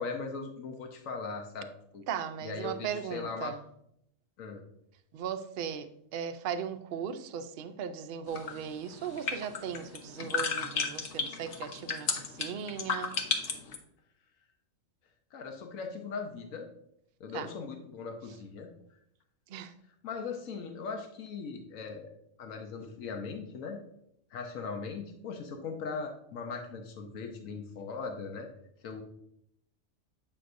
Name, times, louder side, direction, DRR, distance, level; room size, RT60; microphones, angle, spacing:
voice 1, 0.0-1.7 1.9-2.0 2.4-3.5 4.4-4.6 15.3-16.7 17.2-18.7 20.0-23.8 24.3-28.5 28.8-29.0, left 4 dB, 90° left, 1.2 m, -39 dB
voice 2, 2.1-3.6 5.1-13.2 17.3-17.5 19.5-19.7, right 8 dB, 60° right, 0.6 m, -37 dB
sound 1, 8.3-13.8, left 5 dB, 60° left, 1.0 m, -33 dB
8.0 x 5.7 x 2.5 m
omnidirectional pair, 1.4 m